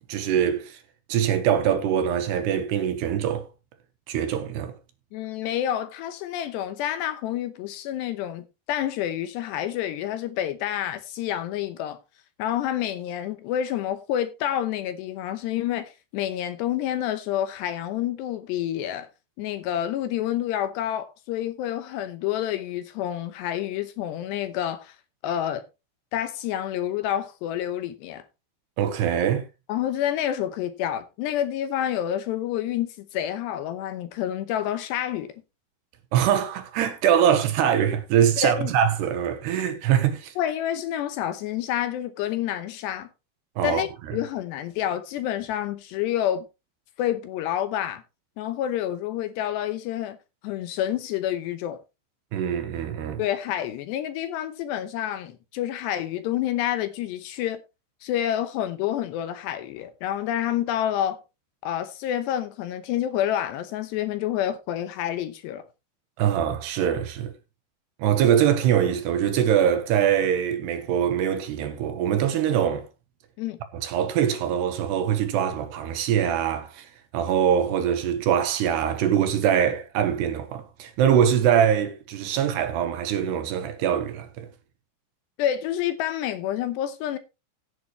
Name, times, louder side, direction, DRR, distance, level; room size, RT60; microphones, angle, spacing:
voice 1, 0.1-0.8 1.1-3.5 4.1-4.7 28.8-29.5 36.1-40.3 43.6-43.8 52.3-53.2 66.2-67.3 68.0-72.9 73.7-84.5, right 9 dB, 70° right, 2.9 m, -23 dB
voice 2, 5.1-12.0 12.4-19.1 19.4-25.0 25.2-25.6 26.1-28.2 29.7-35.3 38.4-38.7 40.4-43.1 43.6-46.5 47.0-48.0 48.4-50.2 50.4-51.8 53.2-57.6 58.0-61.2 61.6-65.6 73.4-73.6 85.4-87.2, left 11 dB, 75° left, 2.8 m, -28 dB
15.5 x 8.6 x 3.1 m
omnidirectional pair, 5.4 m